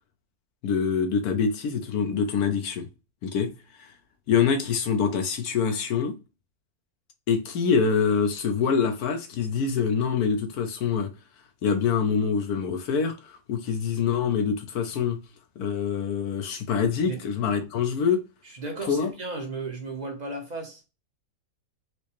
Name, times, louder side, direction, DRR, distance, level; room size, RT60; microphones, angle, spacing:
voice 1, 0.6-2.9 3.2-3.5 3.8-3.9 4.3-6.1 7.3-11.1 11.6-15.2 15.6-18.2 18.9-19.1, left 6 dB, 85° left, 1.3 m, -25 dB
voice 2, 18.4-20.8, right 3 dB, 35° right, 0.9 m, -35 dB
4.7 x 2.1 x 3.0 m
omnidirectional pair, 1.6 m